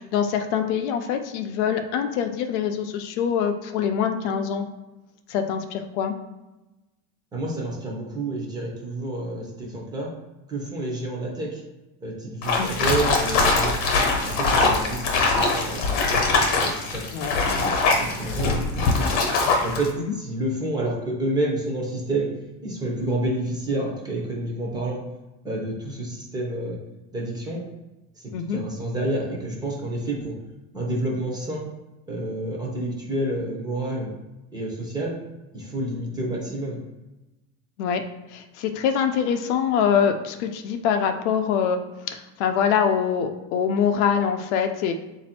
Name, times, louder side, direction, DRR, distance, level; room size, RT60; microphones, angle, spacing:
voice 1, 0.0-4.6 5.3-6.1 12.6-12.7 17.1-17.4 28.3-28.6 37.8-38.0 38.3-44.9, left 7 dB, 70° left, 6 dB, 0.6 m, -24 dB
voice 2, 7.3-10.1 10.5-11.6 12.0-13.8 14.2-16.3 16.6-17.0 17.4-19.1 19.6-22.3 22.6-25.1 25.4-26.8 27.1-27.6 28.2-30.3 30.7-31.7 32.1-34.1 34.5-35.2 35.5-36.8, right 1 dB, 10° right, -3 dB, 0.6 m, -29 dB
sound 1, 12.4-19.9, left 3 dB, 45° left, 1.0 m, -22 dB
4.1 x 2.6 x 4.3 m, 1.0 s
cardioid pair, 175°, 36 cm